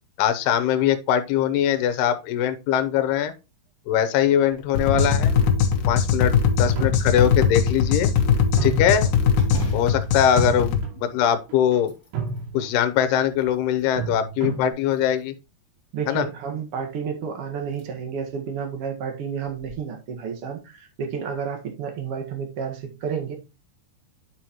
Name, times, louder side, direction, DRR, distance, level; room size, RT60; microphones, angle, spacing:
voice 1, 0.2-3.3 3.9-5.3 5.9-6.3 6.6-8.1 8.6-9.1 9.7-11.9 12.5-15.3 16.1-16.3, left 9 dB, 90° left, 2.9 m, -22 dB
sound 1, 4.5-5.0 5.5-5.6 6.1-6.9 9.3-11.3 11.7-12.5 13.1-14.0 14.9-15.5 17.0-17.1 17.6-17.9 18.3-18.4 19.5-19.7, left 1 dB, 20° left, 2.7 m, -38 dB
sound 2, 4.7-10.8, left 6 dB, 70° left, 2.6 m, -21 dB
sound 3, 4.9-5.7 6.8-7.5 7.9-8.0 8.6-9.3 10.4-11.1 11.5-11.8 12.1-12.8 14.0-14.7, right 5 dB, 90° right, 4.6 m, -31 dB
voice 2, 15.9-23.3, right 6 dB, 50° right, 1.9 m, -31 dB
9.7 x 6.3 x 3.0 m
omnidirectional pair, 4.6 m